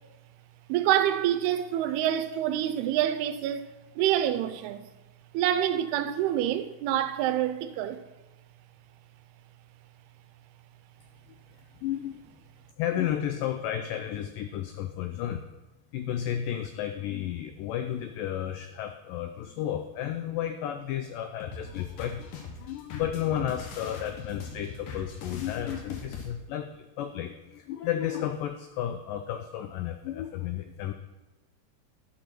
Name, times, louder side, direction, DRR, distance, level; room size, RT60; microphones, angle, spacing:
voice 1, 0.7-3.7 4.0-4.9 5.3-8.0, right 11 dB, 85° right, 2.6 m, -27 dB
voice 2, 11.8-12.2 12.8-15.5 15.9-30.9, left 10 dB, 85° left, 1.9 m, -33 dB
sound 1, 21.4-26.3, left 5 dB, 65° left, 2.7 m, -40 dB
12.0 x 6.8 x 6.0 m
omnidirectional pair, 4.6 m